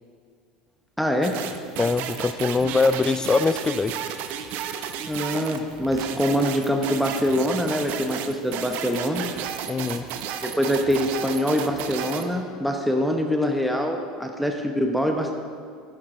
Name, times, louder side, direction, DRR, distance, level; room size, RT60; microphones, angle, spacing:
voice 1, 1.0-1.4 5.1-9.2 10.4-15.3, equal, ahead, 3 dB, 0.9 m, -24 dB
sound 1, 1.2-12.3, right 8 dB, 60° right, 0.8 m, -33 dB
voice 2, 1.8-4.0 9.7-10.1, left 4 dB, 20° left, 15 dB, 0.4 m, -22 dB
11.0 x 10.5 x 3.8 m, 2.2 s
hypercardioid pair, 75°, 3 cm